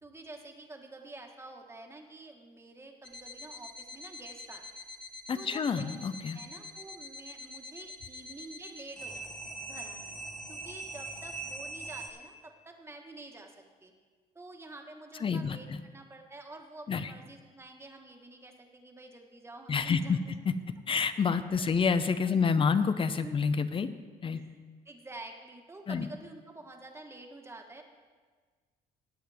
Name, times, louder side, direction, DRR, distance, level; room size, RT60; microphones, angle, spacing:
voice 1, 0.0-4.6 5.3-5.9 6.3-13.5 13.8-13.9 14.3-20.4 21.6-21.7 22.2-22.8 23.2-23.4 24.3-27.8, right 2 dB, 15° right, 3 dB, 1.4 m, -49 dB
sound 1, 3.0-12.1, right 1 dB, 5° left, 1.3 m, -43 dB
voice 2, 5.3-6.4 15.2-15.8 16.9-17.1 19.7-20.2 20.5-20.6 20.9-23.9 24.2-24.4 25.9-26.1, left 5 dB, 30° left, 12 dB, 0.7 m, -28 dB
18.0 x 7.9 x 3.5 m, 1.5 s
cardioid pair, 110°, 17 cm